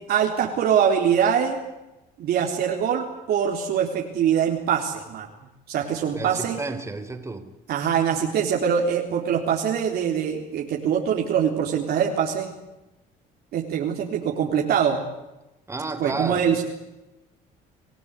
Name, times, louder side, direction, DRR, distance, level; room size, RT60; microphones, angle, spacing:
voice 1, 0.1-1.6 2.2-5.3 5.7-6.6 7.7-12.5 13.5-15.0 16.0-16.6, right 8 dB, 70° right, 0 dB, 3.8 m, -23 dB
voice 2, 6.1-7.4 15.7-16.5, right 3 dB, 15° right, 9 dB, 3.6 m, -31 dB
26.5 x 16.5 x 9.8 m, 0.99 s
cardioid pair, 110°, 17 cm